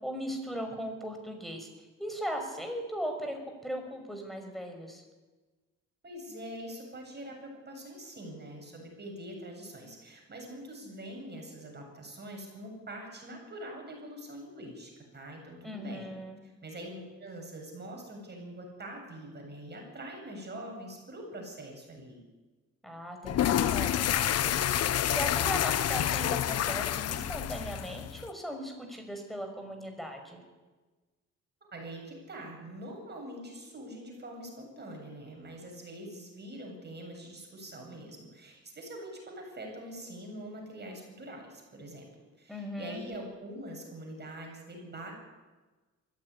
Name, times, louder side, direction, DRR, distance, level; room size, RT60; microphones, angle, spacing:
voice 1, 0.0-1.7 2.0-3.4 3.6-5.0 15.6-16.4 22.8-30.4 42.5-43.0, equal, ahead, 4 dB, 5.9 m, -38 dB
voice 2, 6.0-16.1 16.4-22.2 31.7-45.2, right 1 dB, 35° right, 1 dB, 8.0 m, -44 dB
sound 1, 23.2-28.3, left 11 dB, 55° left, 0.8 m, -28 dB
21.0 x 15.5 x 10.0 m, 1.3 s
cardioid pair, 90°, 30 cm